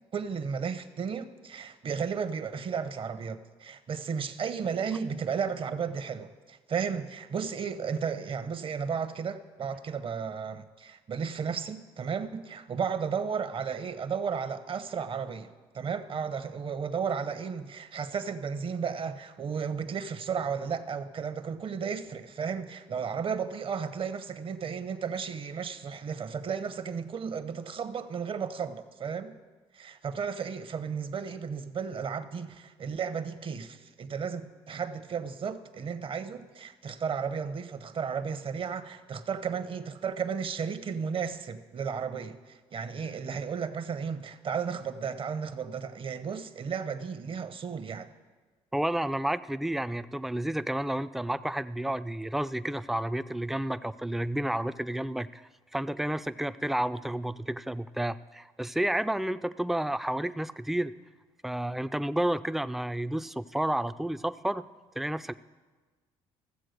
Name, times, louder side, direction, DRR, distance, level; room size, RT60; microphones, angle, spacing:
voice 1, 0.1-29.4 29.7-48.1, right 6 dB, 45° right, 0.9 m, -34 dB
voice 2, 48.7-60.9 61.4-64.7 65.0-65.3, right 1 dB, ahead, 0.4 m, -31 dB
14.0 x 7.6 x 6.6 m
supercardioid pair, 70°, 12 cm